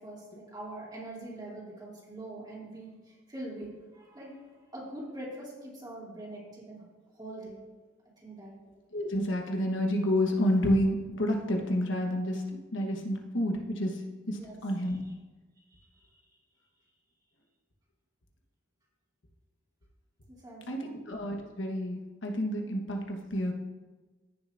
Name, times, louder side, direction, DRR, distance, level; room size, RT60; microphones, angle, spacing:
voice 1, 0.0-4.4 4.7-6.8 7.2-7.6 8.2-8.5 14.4-14.6 20.3-21.0, right 1 dB, 20° right, -6 dB, 3.0 m, -43 dB
voice 2, 8.9-15.2 20.7-23.5, equal, 90° left, 2 dB, 1.3 m, -30 dB
15.5 x 6.8 x 2.6 m, 1.2 s
head